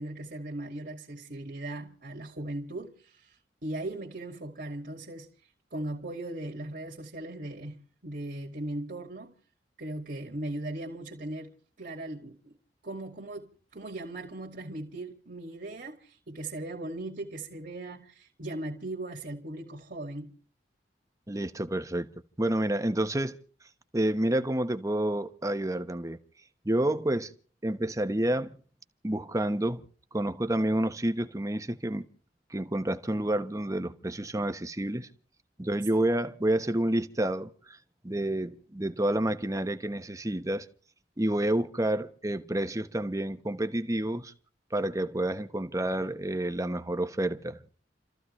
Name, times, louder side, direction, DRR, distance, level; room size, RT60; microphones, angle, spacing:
voice 1, 0.0-5.3 5.7-9.4 9.8-11.5 11.8-12.6 12.8-20.4, right 1 dB, 55° right, 2.3 m, -38 dB
voice 2, 21.3-22.1 22.4-23.4 23.9-26.2 26.6-27.3 27.6-28.6 29.0-29.8 30.1-32.1 32.5-35.1 35.6-37.8 38.0-40.7 41.2-44.3 44.7-47.7, right 1 dB, 20° right, 1.1 m, -29 dB
30.0 x 14.5 x 3.2 m
head